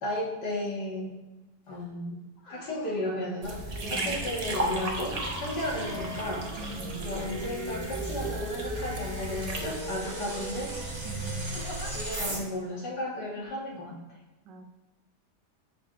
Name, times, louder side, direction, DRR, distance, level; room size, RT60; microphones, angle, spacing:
voice 1, 0.0-1.1 1.7-2.2 2.5-3.6 3.9-6.4 7.0-10.7 11.9-13.9, left 1 dB, 75° left, -4 dB, 2.1 m, -34 dB
sound 1, 1.7-1.9 2.4-3.0 3.8-4.4 5.3-7.4 8.2-8.9 9.3-9.5 10.0-10.6 11.5-11.9 12.7-12.8, equal, 55° left, 2.9 m, -47 dB
sound 2, 3.4-9.8, right 2 dB, 40° right, 0.5 m, -36 dB
sound 3, 3.6-12.4, right 1 dB, 20° right, 0.9 m, -36 dB
voice 2, 3.8-4.3 6.6-7.1 11.0-11.6 14.4-14.7, right 2 dB, 85° right, 6 dB, 1.3 m, -42 dB
10.0 x 4.5 x 2.5 m, 1.1 s
omnidirectional pair, 1.8 m